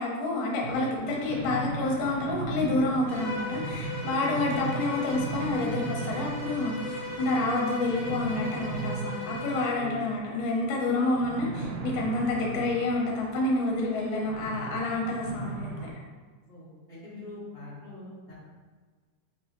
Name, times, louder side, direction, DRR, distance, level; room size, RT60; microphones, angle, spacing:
voice 1, 0.0-15.7, left 2 dB, 75° left, -2 dB, 2.2 m, -28 dB
sound 1, 0.6-15.9, right 3 dB, 80° right, 2.1 m, -38 dB
Bowed string instrument, 3.1-9.8, left 2 dB, 45° right, 1.4 m, -37 dB
voice 2, 4.0-4.4 9.7-10.0 16.5-18.3, left 2 dB, 65° right, -14 dB, 0.6 m, -42 dB
5.6 x 3.0 x 2.8 m, 1.4 s
omnidirectional pair, 3.8 m